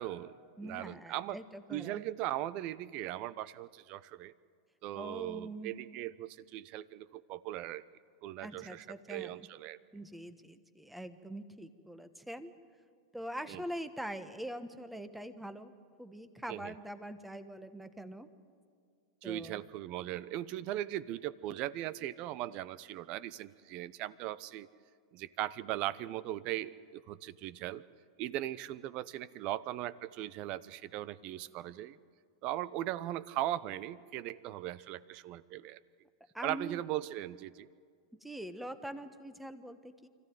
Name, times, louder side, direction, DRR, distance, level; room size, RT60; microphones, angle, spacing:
voice 1, 0.0-1.4 1.7-4.3 4.8-7.8 8.2-9.8 13.5-13.6 16.5-16.7 19.2-24.7 25.1-27.8 28.2-32.0 32.4-35.8 36.4-37.7, right 14 dB, 45° right, 18 dB, 0.7 m, -39 dB
voice 2, 0.6-2.0 4.9-5.7 8.4-9.5 9.9-12.5 13.1-15.7 16.0-18.3 19.2-19.6 36.3-36.8 38.2-40.1, right 1 dB, 5° right, 10 dB, 1.2 m, -43 dB
25.0 x 15.0 x 9.3 m, 2.2 s
hypercardioid pair, 115°, 2 cm